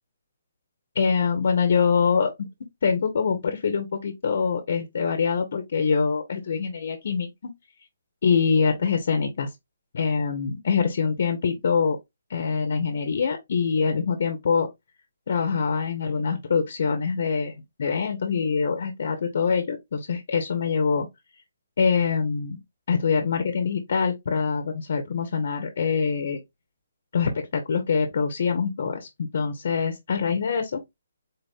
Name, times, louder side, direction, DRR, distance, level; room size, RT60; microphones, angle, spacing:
voice 1, 0.9-2.5 2.8-7.5 8.2-9.5 9.9-12.0 12.3-14.7 15.3-21.1 21.8-22.6 22.9-26.4 27.1-30.8, left 5 dB, 60° left, 0.7 m, -24 dB
4.0 x 2.6 x 3.5 m
hypercardioid pair, 155°, 0 cm